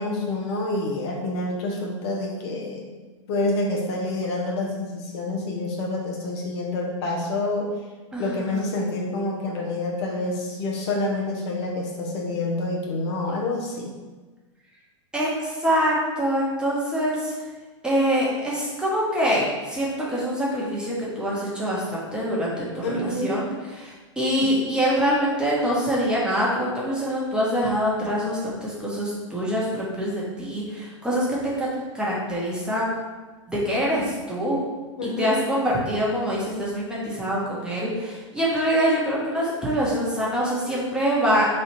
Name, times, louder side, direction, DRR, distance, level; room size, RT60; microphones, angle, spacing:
voice 1, 0.0-2.9 3.3-7.7 8.2-13.9 22.8-23.4 24.4-24.5 35.0-35.4, left 2 dB, 55° left, -1 dB, 0.7 m, -27 dB
voice 2, 8.1-8.7 15.1-17.3 17.8-31.7 31.9-33.0 33.5-34.6 35.2-41.5, equal, 5° right, -6 dB, 0.9 m, -25 dB
3.1 x 2.4 x 4.3 m, 1.3 s
hypercardioid pair, 120°, 17 cm